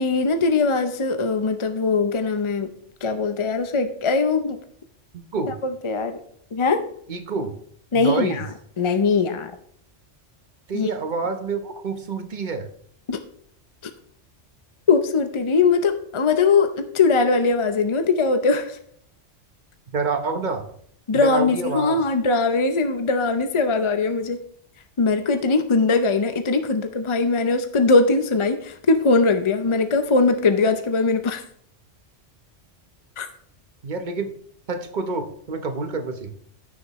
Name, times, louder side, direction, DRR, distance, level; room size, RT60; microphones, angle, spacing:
voice 1, 0.0-2.7 3.0-4.6 5.6-6.2 6.5-6.9 7.9-9.5 10.7-10.9 13.1-13.2 13.8-13.9 14.9-18.8 21.1-24.4 25.0-31.4 33.2-33.3, left 4 dB, 40° left, 8 dB, 0.4 m, -21 dB
voice 2, 5.1-5.6 7.1-7.5 7.9-8.4 10.7-12.7 19.9-20.6 21.1-22.0 33.8-34.3 34.7-36.3, right 4 dB, 45° right, 7 dB, 1.0 m, -27 dB
15.5 x 6.4 x 3.1 m, 0.65 s
omnidirectional pair, 1.2 m